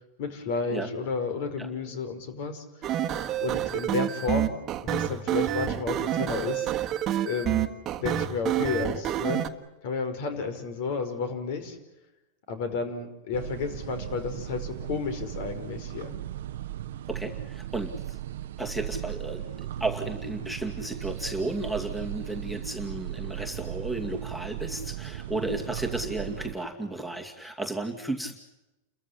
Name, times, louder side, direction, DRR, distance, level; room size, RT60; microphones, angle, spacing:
voice 1, 0.2-2.9 3.4-6.7 7.2-7.7 8.0-9.4 9.8-11.8 12.5-16.2, left 5 dB, 60° left, 9 dB, 5.1 m, -32 dB
sound 1, 2.8-9.5, right 11 dB, 30° right, 1.5 m, -28 dB
sound 2, 13.3-26.5, right 12 dB, 75° right, 0.8 m, -37 dB
voice 2, 17.1-18.2 18.6-28.3, right 2 dB, ahead, 4 dB, 2.4 m, -33 dB
30.0 x 14.5 x 9.9 m, 0.96 s
supercardioid pair, 135°, 0 cm